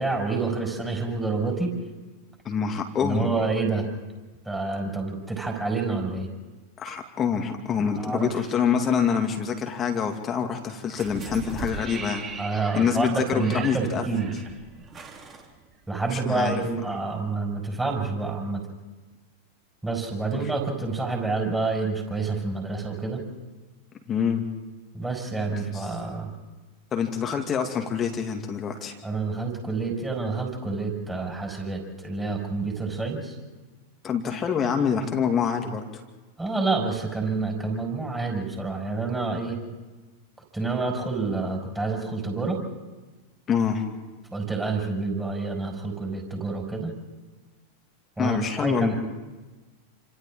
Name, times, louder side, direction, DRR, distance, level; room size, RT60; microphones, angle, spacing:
voice 1, 0.0-1.7 3.0-3.9 4.5-6.3 8.0-8.4 12.4-14.3 15.9-18.6 19.8-23.3 24.9-26.3 29.0-33.4 36.4-39.6 40.5-42.6 44.3-46.9 48.2-48.9, right 3 dB, 10° right, 0 dB, 5.3 m, -28 dB
voice 2, 2.4-3.3 6.8-12.3 12.7-14.0 16.1-16.5 20.3-20.5 24.1-24.4 25.6-25.9 26.9-28.9 34.0-35.8 43.5-43.8 48.2-48.9, left 7 dB, 25° left, 4 dB, 2.3 m, -26 dB
sound 1, 10.9-16.2 16.5-16.6, right 4 dB, 25° right, 3.2 m, -39 dB
28.5 x 26.5 x 3.7 m, 1.2 s
figure-of-eight pair, 90°, 0 cm